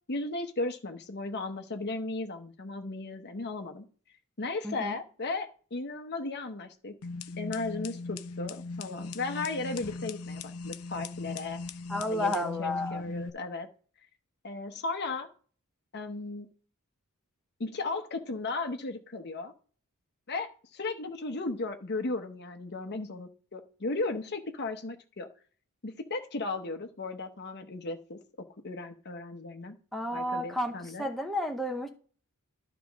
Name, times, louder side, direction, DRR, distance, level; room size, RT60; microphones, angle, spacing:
voice 1, 0.1-3.8 4.4-6.9 7.4-11.6 12.1-13.7 14.4-15.3 15.9-16.5 17.6-19.5 20.3-25.3 25.8-29.7 30.1-31.1, left 3 dB, 50° left, 1.0 m, -36 dB
voice 2, 4.6-5.0 11.9-13.0 29.9-31.9, left 1 dB, ahead, 0.8 m, -32 dB
sound 1, 7.0-13.3, left 3 dB, 75° left, 0.6 m, -39 dB
12.5 x 5.0 x 3.6 m
head